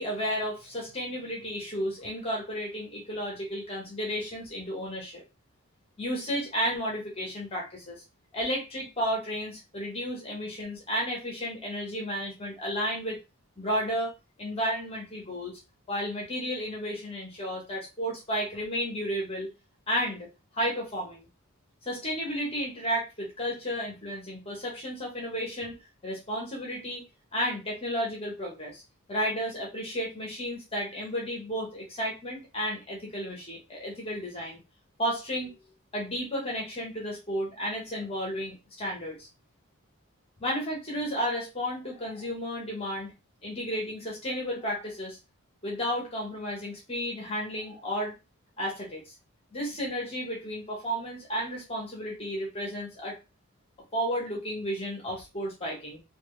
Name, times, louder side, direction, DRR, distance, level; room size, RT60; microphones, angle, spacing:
voice 1, 0.0-5.2 6.0-8.0 8.3-13.2 13.6-14.1 14.4-15.6 15.9-19.5 19.9-20.3 20.5-21.3 21.8-25.8 26.0-27.0 27.3-28.8 29.1-34.6 35.0-35.5 35.9-39.3 40.4-43.1 43.4-45.2 45.6-48.1 48.6-49.1 49.5-53.2 53.9-56.0, equal, 25° left, -2 dB, 1.2 m, -32 dB
4.3 x 2.5 x 3.3 m, 0.27 s
head